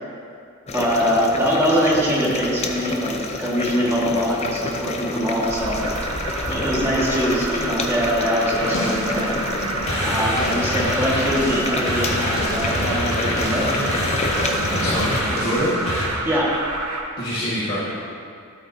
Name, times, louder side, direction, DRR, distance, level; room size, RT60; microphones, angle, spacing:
sound 1, 0.7-15.2, left 2 dB, 30° left, 0.5 m, -29 dB
voice 1, 0.7-5.8 6.5-9.4 10.0-13.7 16.2-16.5, equal, 10° right, -6 dB, 1.5 m, -23 dB
Alarm, 5.4-17.0, right 2 dB, 80° right, 1.1 m, -29 dB
sound 2, 7.7-16.1, left 1 dB, 65° left, 1.8 m, -27 dB
voice 2, 14.7-15.7 17.2-17.9, equal, 45° left, -9 dB, 1.5 m, -25 dB
12.0 x 8.4 x 2.7 m, 2.4 s
head